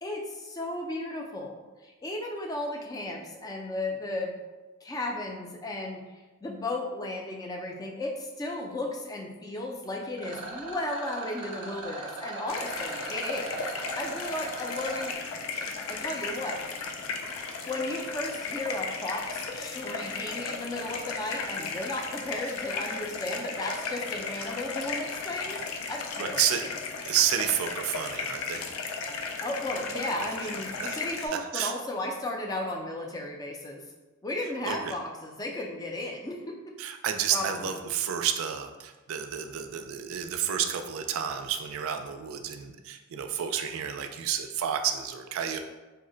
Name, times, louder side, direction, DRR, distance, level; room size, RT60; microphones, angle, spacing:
voice 1, 0.0-4.3 4.8-6.0 6.4-13.6 14.0-15.1 15.9-16.6 17.6-26.4 29.4-33.8 34.2-36.7 37.3-37.5, left 1 dB, 20° left, 1 dB, 0.3 m, -34 dB
Rattle, 10.2-15.1, right 3 dB, 25° right, 0.6 m, -39 dB
sound 1, 12.5-31.3, left 4 dB, 90° left, 0.4 m, -35 dB
voice 2, 26.2-26.6 27.0-28.7 30.8-31.0 31.3-31.7 34.6-35.0 36.8-45.6, right 9 dB, 85° right, 6 dB, 0.3 m, -30 dB
2.6 x 2.1 x 3.7 m, 1.2 s
head